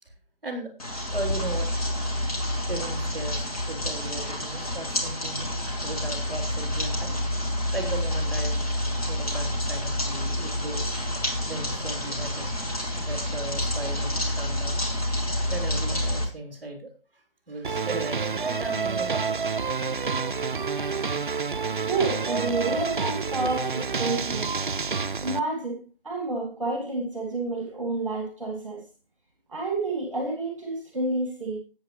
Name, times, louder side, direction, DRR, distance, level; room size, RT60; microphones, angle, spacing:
sound 1, 0.8-16.3, left 1 dB, 40° left, 2.7 m, -28 dB
voice 1, 1.1-1.7 2.7-5.5 5.8-7.2 7.7-8.6 9.1-10.9 11.4-12.5 12.9-14.8 15.5-19.5 19.8-20.0, right 2 dB, 5° right, -1 dB, 2.8 m, -37 dB
sound 2, 17.6-25.4, right 5 dB, 55° right, 0.5 m, -28 dB
voice 2, 21.8-24.5 25.2-25.8 26.0-28.8 29.5-31.6, right 2 dB, 35° right, 1 dB, 2.2 m, -29 dB
13.5 x 8.5 x 3.2 m, 0.35 s
figure-of-eight pair, 175°, 29 cm